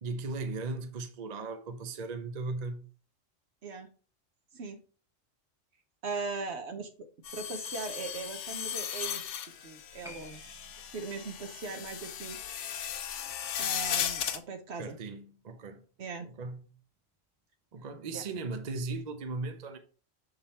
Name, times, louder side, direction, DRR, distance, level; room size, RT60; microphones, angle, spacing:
voice 1, 0.0-2.8 14.8-15.8 16.2-16.7 17.7-19.8, right 3 dB, 45° right, 0.6 m, -37 dB
voice 2, 6.0-6.9 7.3-9.2 9.6-12.4 13.2-13.3 13.6-15.0 16.0-16.3 18.1-18.3, right 4 dB, 60° right, 1.1 m, -39 dB
sound 1, 7.2-14.4, left 9 dB, 70° left, 0.9 m, -36 dB
Piano, 10.0-17.0 17.2-17.3, left 1 dB, 5° right, 0.5 m, -58 dB
6.8 x 3.7 x 4.2 m
omnidirectional pair, 1.3 m